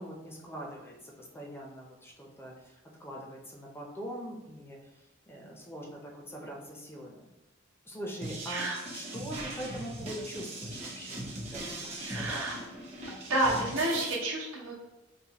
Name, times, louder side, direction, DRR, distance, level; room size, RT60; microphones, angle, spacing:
voice 1, 0.0-2.7 3.0-4.8 5.3-7.3 7.9-11.2 11.5-12.7, equal, 10° left, -1 dB, 0.5 m, -42 dB
sound 1, 8.2-14.1, right 1 dB, 35° right, 0.8 m, -40 dB
voice 2, 8.5-8.8 12.0-12.6 13.3-14.7, right 1 dB, 85° right, -3 dB, 0.9 m, -30 dB
4.1 x 2.1 x 2.9 m, 1.1 s
head